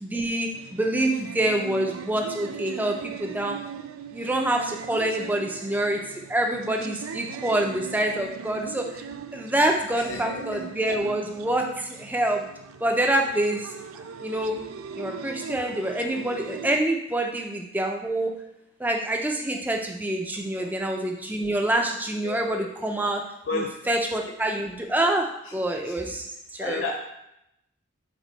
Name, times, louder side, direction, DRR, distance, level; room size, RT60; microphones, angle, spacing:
voice 1, 0.0-3.6 4.1-6.0 6.3-9.0 9.3-12.5 12.8-13.7 14.2-14.5 15.0-18.4 18.8-23.2 23.5-26.3 26.5-26.9, right 1 dB, 10° right, 2 dB, 0.5 m, -26 dB
sound 1, 0.5-16.8, right 6 dB, 75° right, 0.4 m, -39 dB
voice 2, 9.9-10.6 20.5-20.8 22.2-22.7 23.5-24.1 25.8-26.2 26.6-26.9, left 3 dB, 60° left, 1 dB, 0.6 m, -33 dB
6.3 x 3.9 x 4.0 m, 0.83 s
head